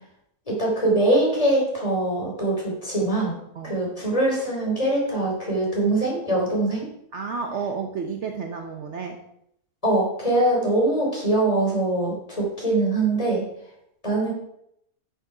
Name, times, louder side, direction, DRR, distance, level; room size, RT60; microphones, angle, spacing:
voice 1, 0.5-3.4 3.6-6.9 9.8-13.4 14.0-14.3, right 2 dB, 25° left, -3 dB, 3.6 m, -23 dB
voice 2, 7.1-9.2, right 5 dB, 55° right, 4 dB, 1.0 m, -31 dB
10.5 x 6.6 x 4.9 m, 0.76 s
omnidirectional pair, 1.6 m